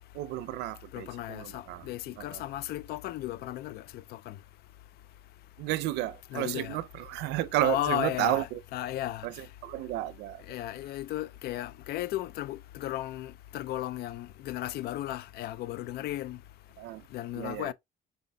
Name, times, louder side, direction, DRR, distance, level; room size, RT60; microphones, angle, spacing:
voice 1, 0.1-1.9 2.2-2.4 5.6-8.6 9.2-10.4 16.8-17.1 17.3-17.7, right 15 dB, 85° right, 0.5 m, -32 dB
voice 2, 0.9-4.3 6.3-6.8 7.6-9.3 10.5-16.4 17.1-17.7, left 14 dB, 65° left, 0.4 m, -35 dB
5.6 x 3.9 x 2.2 m
cardioid pair, 110°, 17 cm